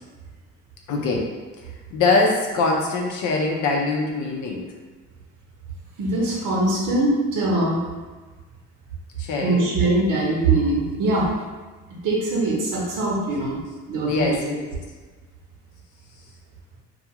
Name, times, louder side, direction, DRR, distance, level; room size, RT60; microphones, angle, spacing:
voice 1, 0.9-1.3 1.9-4.6 9.2-9.7 14.1-14.7, left 3 dB, 80° left, 0 dB, 0.6 m, -23 dB
voice 2, 6.0-7.8 9.4-11.3 12.0-13.6 13.9-14.4, right 2 dB, 90° right, -4 dB, 0.8 m, -22 dB
2.4 x 2.3 x 2.9 m, 1.4 s
cardioid pair, 90°, 30 cm